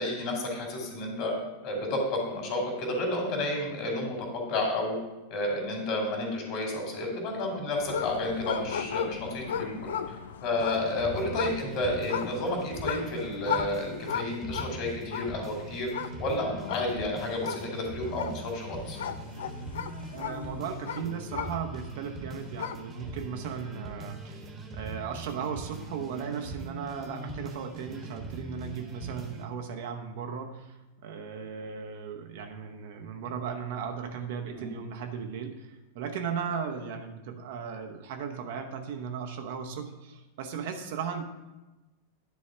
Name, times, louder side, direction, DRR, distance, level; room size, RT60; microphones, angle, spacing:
voice 1, 0.0-1.3 1.6-5.0 5.3-9.9 10.4-15.9 16.2-19.0 34.5-34.7, left 1 dB, 45° left, 1 dB, 2.6 m, -31 dB
sound 1, 7.8-22.0 22.4-23.0, left 8 dB, 60° left, 0.4 m, -36 dB
sound 2, 10.6-29.5, right 3 dB, 20° right, 1.2 m, -42 dB
voice 2, 20.1-41.2, right 6 dB, 50° right, 4 dB, 0.9 m, -36 dB
10.5 x 4.1 x 6.0 m, 1.1 s
figure-of-eight pair, 90°, 0 cm